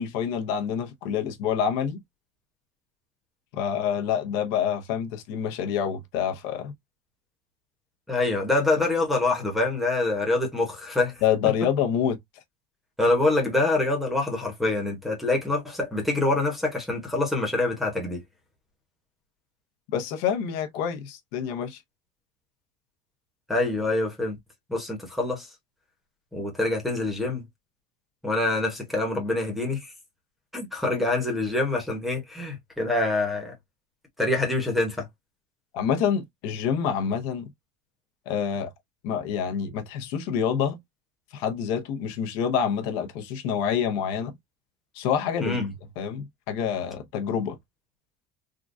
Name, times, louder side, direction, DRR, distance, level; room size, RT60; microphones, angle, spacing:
voice 1, 0.0-2.0 3.5-6.7 8.8-8.9 11.2-12.2 19.9-21.8 35.7-37.5 38.3-38.7 39.0-40.8 41.3-44.3 44.9-47.6, left 8 dB, 60° left, 0.8 m, -27 dB
voice 2, 8.1-11.1 13.0-18.2 23.5-24.4 24.7-25.5 26.3-27.4 28.2-29.9 30.5-33.5 34.2-35.1 45.4-45.6, left 2 dB, ahead, 0.8 m, -25 dB
3.7 x 2.3 x 2.5 m
cardioid pair, 170°, 21 cm